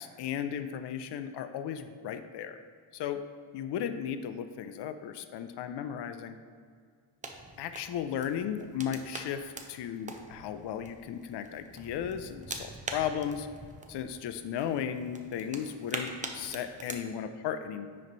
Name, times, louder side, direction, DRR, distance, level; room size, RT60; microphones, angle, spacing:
voice 1, 0.0-2.6 2.9-3.2 3.5-6.4 7.6-13.5 13.9-17.9, left 9 dB, 60° left, 9 dB, 0.5 m, -35 dB
sound 1, 7.2-17.0, right 3 dB, 15° right, 0.5 m, -44 dB
9.6 x 3.2 x 3.9 m, 2.1 s
cardioid pair, 120°, 47 cm